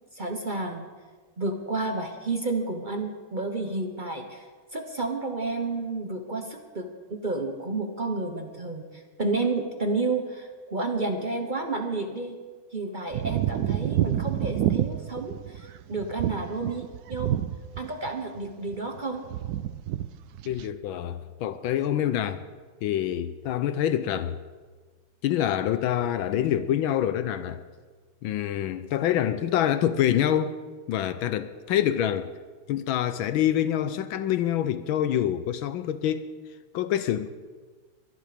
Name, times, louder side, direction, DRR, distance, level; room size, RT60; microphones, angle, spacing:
voice 1, 0.1-0.8 1.4-4.5 4.7-12.4 12.7-17.4 17.8-19.2, right 3 dB, 35° right, 0.8 m, -31 dB
sound 1, 13.1-18.1 18.4-19.0 19.3-20.1 20.3-20.7, right 12 dB, 80° right, 0.8 m, -28 dB
voice 2, 20.5-22.4 22.8-24.4 25.2-27.6 28.2-30.6 30.9-32.3 32.7-36.2 36.7-37.3, left 11 dB, 80° left, 1.4 m, -26 dB
23.0 x 10.0 x 5.1 m
omnidirectional pair, 2.2 m